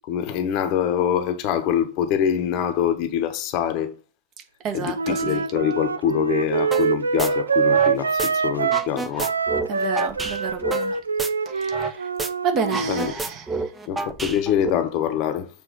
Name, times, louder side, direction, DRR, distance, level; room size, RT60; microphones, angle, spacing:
voice 1, 0.1-3.9 4.7-9.3 12.9-13.1 13.9-15.5, left 9 dB, 40° left, 0.9 m, -24 dB
voice 2, 4.6-5.4 9.7-11.0 11.4-12.1 12.4-13.7, right 6 dB, 35° right, 1.1 m, -30 dB
Wind instrument woodwind instrument, 4.9-8.9 9.2-13.1, right 5 dB, 75° right, 0.3 m, -24 dB
sound 1, 6.7-6.9 7.2-8.3 8.6-11.9 12.2-12.3 12.6-14.7, right 3 dB, 10° right, 0.6 m, -29 dB
6.9 x 3.3 x 4.7 m
figure-of-eight pair, 90°, 0 cm